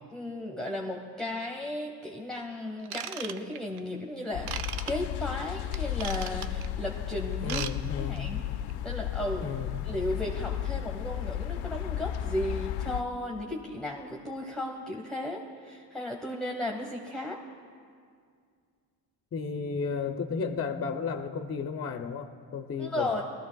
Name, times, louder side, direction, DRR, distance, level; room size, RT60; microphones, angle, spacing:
voice 1, 0.1-7.6 8.0-8.4 8.8-9.5 9.8-17.4 22.8-23.2, left 1 dB, ahead, 0 dB, 1.3 m, -35 dB
Ratchet pawl / Tools, 2.8-3.8 4.5-4.9 5.7-6.7 7.3-7.7 8.0-8.2 8.7-8.8, right 9 dB, 60° right, 0.7 m, -36 dB
sound 1, 4.3-13.0, left 11 dB, 85° left, 0.6 m, -34 dB
voice 2, 7.4-8.3 9.4-9.7 19.3-23.2, left 5 dB, 30° left, 6 dB, 0.7 m, -33 dB
19.0 x 14.0 x 2.3 m, 2.1 s
cardioid pair, 90°, 46 cm